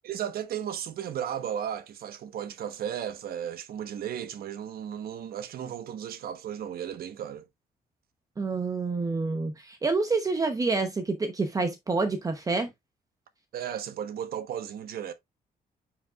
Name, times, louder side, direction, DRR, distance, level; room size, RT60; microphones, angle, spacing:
voice 1, 0.0-7.5 13.5-15.1, right 9 dB, 75° right, 1.1 m, -35 dB
voice 2, 8.4-12.7, right 3 dB, 20° right, 0.8 m, -28 dB
9.3 x 4.8 x 2.4 m
wide cardioid pair, 175°, 16 cm